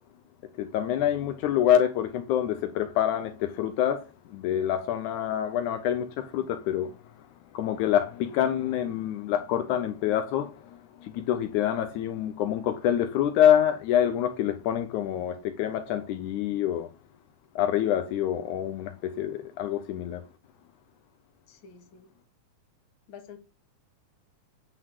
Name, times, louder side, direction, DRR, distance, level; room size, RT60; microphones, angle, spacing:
voice 1, 0.6-7.0 7.5-16.9 17.6-20.2, left 10 dB, 80° left, 2.1 m, -26 dB
voice 2, 21.5-22.1 23.1-23.4, left 7 dB, 45° left, 2.0 m, -48 dB
9.3 x 3.9 x 6.3 m
omnidirectional pair, 3.6 m